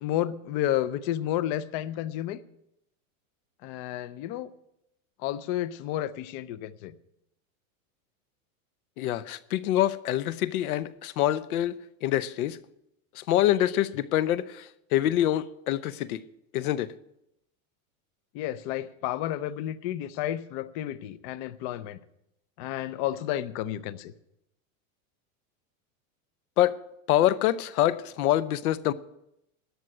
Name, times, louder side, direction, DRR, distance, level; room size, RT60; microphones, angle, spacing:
voice 1, 0.0-2.4 3.6-4.5 5.2-6.9 18.3-22.0 22.6-24.1, left 12 dB, 30° left, 0.4 m, -31 dB
voice 2, 9.0-12.6 13.2-16.2 16.5-16.9 26.6-26.8 27.1-28.9, left 13 dB, 85° left, 0.8 m, -26 dB
12.5 x 6.4 x 9.7 m
supercardioid pair, 155°, 42 cm